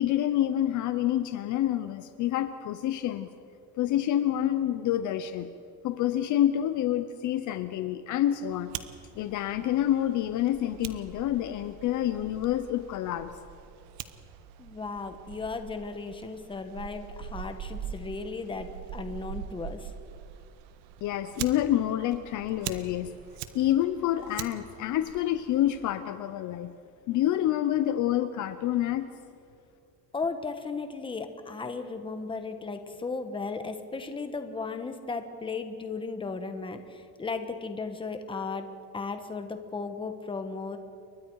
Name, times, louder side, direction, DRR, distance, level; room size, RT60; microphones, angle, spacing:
voice 1, 0.0-3.3 3.8-5.5 5.8-8.7 9.2-13.3 21.0-23.1 23.5-26.7 27.1-29.1, left 12 dB, 50° left, 11 dB, 0.8 m, -27 dB
Fire, 8.5-25.9, right 10 dB, 85° right, 1.3 m, -43 dB
voice 2, 14.6-19.9 30.1-38.7 38.9-40.8, left 4 dB, 15° left, 7 dB, 1.3 m, -35 dB
29.5 x 23.5 x 4.8 m, 2.5 s
cardioid pair, 165°, 39 cm